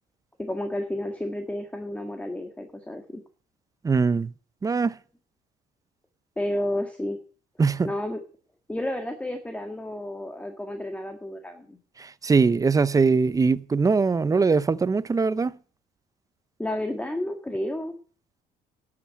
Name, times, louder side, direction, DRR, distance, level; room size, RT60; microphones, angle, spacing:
voice 1, 0.4-3.2 6.4-7.2 7.8-8.2 8.7-11.8 16.6-17.9, left 1 dB, 10° left, 1.8 m, -31 dB
voice 2, 3.8-4.3 4.6-5.0 7.6-7.9 12.0-15.6, right 4 dB, 20° right, 0.6 m, -22 dB
12.0 x 8.6 x 8.5 m
cardioid pair, 110°, 17 cm